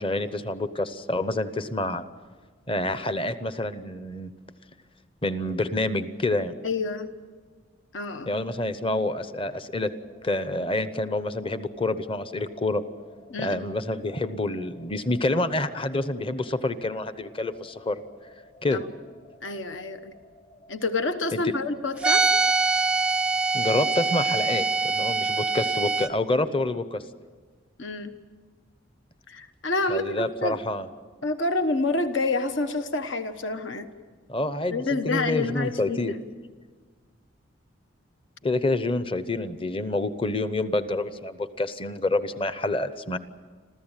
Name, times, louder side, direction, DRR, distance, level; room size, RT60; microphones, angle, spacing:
voice 1, 0.0-2.0 2.7-4.3 5.2-6.5 8.3-9.9 10.2-12.8 13.4-18.0 18.6-18.8 21.3-21.4 23.5-27.0 29.9-30.9 34.3-36.1 38.4-43.2, left 2 dB, 25° left, 12 dB, 0.9 m, -27 dB
voice 2, 6.6-7.1 7.9-8.3 13.3-13.6 18.7-18.8 19.4-20.1 20.7-22.3 27.8-28.1 29.3-30.6 31.2-33.9 34.7-36.1, left 3 dB, 75° left, 8 dB, 1.2 m, -28 dB
sound 1, 9.7-25.1, equal, 55° left, 6.1 m, -55 dB
sound 2, 22.0-26.1, right 4 dB, 5° right, 0.6 m, -24 dB
26.5 x 15.0 x 9.0 m, 1.5 s
head